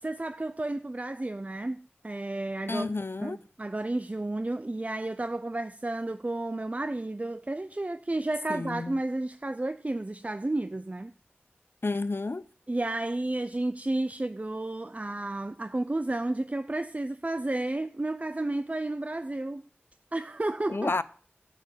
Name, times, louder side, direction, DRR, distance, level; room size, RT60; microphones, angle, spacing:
voice 1, 0.0-2.9 3.2-11.1 12.7-19.6 20.1-21.0, right 2 dB, 35° right, 0.6 m, -32 dB
voice 2, 2.7-3.4 8.5-9.0 11.8-12.5 20.7-21.0, left 3 dB, 60° left, 0.6 m, -30 dB
12.0 x 4.7 x 7.9 m
wide cardioid pair, 50°, 4 cm